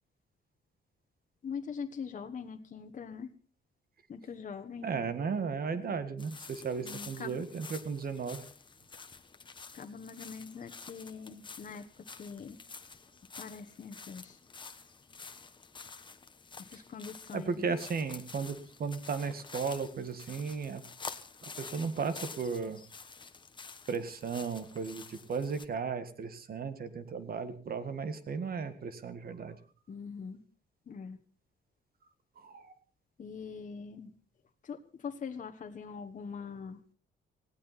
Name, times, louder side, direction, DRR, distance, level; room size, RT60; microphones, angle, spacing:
voice 1, 1.4-3.3 4.1-5.0 5.7-5.9 6.8-7.4 9.7-12.6 13.4-14.4 16.6-17.7 29.9-30.4 30.9-31.2 33.2-34.1 34.6-36.8, left 6 dB, 40° left, 5 dB, 1.3 m, -43 dB
voice 2, 4.8-8.4 16.7-16.8 17.3-20.8 21.4-22.8 23.9-29.6 32.4-32.8, right 5 dB, 50° right, 11 dB, 1.8 m, -35 dB
sound 1, 6.2-25.6, left 4 dB, 25° left, 1.2 m, -49 dB
19.0 x 17.0 x 4.2 m, 0.41 s
wide cardioid pair, 155°, 20 cm